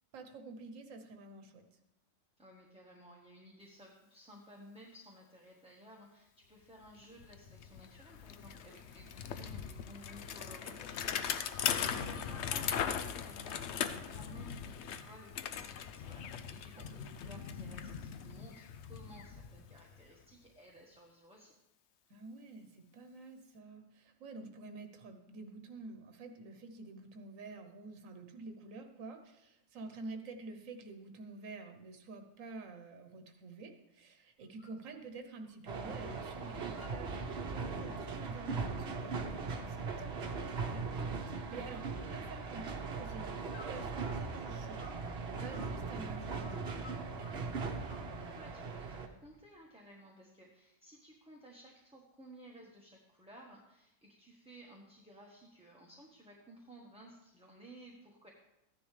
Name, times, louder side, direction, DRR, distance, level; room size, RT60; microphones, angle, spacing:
voice 1, 0.1-1.7 11.9-12.2 16.8-17.0 22.1-46.6, right 3 dB, 85° right, 6 dB, 1.3 m, -49 dB
voice 2, 2.4-21.5 47.8-58.3, right 1 dB, 5° right, -2 dB, 1.1 m, -56 dB
Bicycle, 6.8-6.9 7.2-20.1, left 8 dB, 65° left, 0.9 m, -39 dB
sound 1, 34.4-34.8 35.2-36.1 36.4-37.3 37.7-40.5 40.9-41.4 41.7-42.7 43.5-45.0 45.3-47.4 47.9-48.6, left 3 dB, 50° left, 1.8 m, -58 dB
sound 2, 35.7-49.1, right 4 dB, 55° right, 1.1 m, -39 dB
14.0 x 10.0 x 3.3 m, 0.86 s
omnidirectional pair, 1.3 m